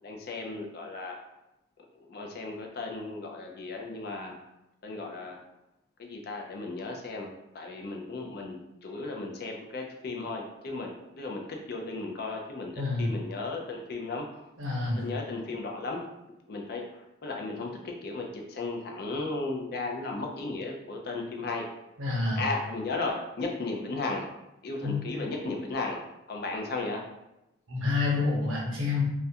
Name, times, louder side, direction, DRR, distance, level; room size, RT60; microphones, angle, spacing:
voice 1, 0.0-1.2 2.1-4.4 4.8-5.4 6.0-11.4 11.7-14.2 15.0-16.0 16.5-21.7 22.4-24.3 24.6-26.0 26.3-27.0, left 3 dB, 50° left, 1 dB, 0.4 m, -35 dB
voice 2, 12.8-13.1 14.6-15.0 22.0-22.4 24.8-25.0 27.7-29.0, left 3 dB, 80° right, -3 dB, 0.8 m, -28 dB
2.3 x 2.1 x 2.7 m, 0.89 s
head